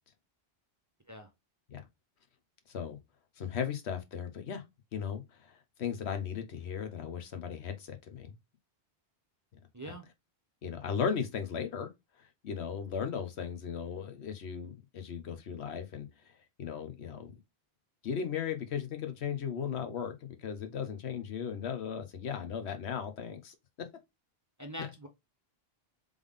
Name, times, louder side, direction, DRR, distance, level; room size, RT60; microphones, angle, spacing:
voice 1, 2.7-3.0 3.4-4.6 4.9-8.3 9.8-9.9 10.6-11.9 12.2-16.3 16.6-17.3 18.0-23.9, left 7 dB, 85° left, 1.2 m, -37 dB
voice 2, 9.7-10.1 24.6-25.1, equal, 20° right, 0.5 m, -43 dB
3.7 x 3.5 x 3.5 m
omnidirectional pair, 1.1 m